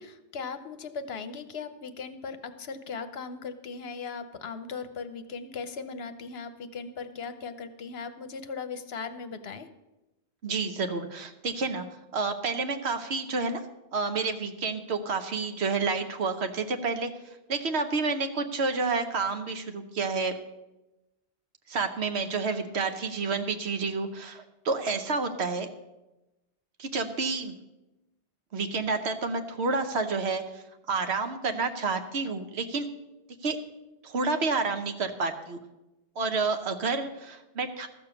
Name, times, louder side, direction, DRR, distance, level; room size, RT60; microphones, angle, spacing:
voice 1, 0.0-9.7, left 5 dB, 65° left, 10 dB, 1.0 m, -38 dB
voice 2, 10.4-11.8 12.1-13.6 13.9-17.1 17.5-20.3 21.7-25.7 26.8-27.5 28.5-32.9 33.4-33.6 34.0-35.6 36.2-37.9, right 4 dB, 70° right, 8 dB, 1.2 m, -29 dB
13.5 x 6.7 x 7.0 m, 1.0 s
omnidirectional pair, 1.1 m